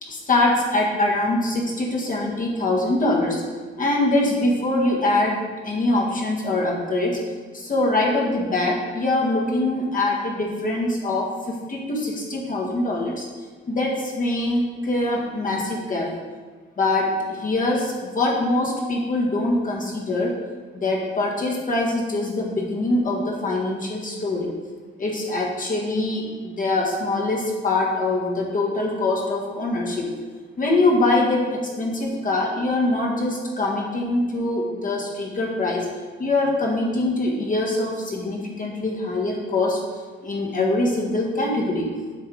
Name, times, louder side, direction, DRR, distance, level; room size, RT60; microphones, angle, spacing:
voice 1, 0.0-3.4 3.8-7.2 7.5-13.3 13.7-16.1 16.8-20.3 20.7-24.5 25.0-30.1 30.6-35.9 36.2-39.8 40.2-41.9, left 2 dB, 40° left, -2 dB, 1.6 m, -23 dB
7.4 x 3.6 x 4.9 m, 1.4 s
cardioid pair, 90°, 20 cm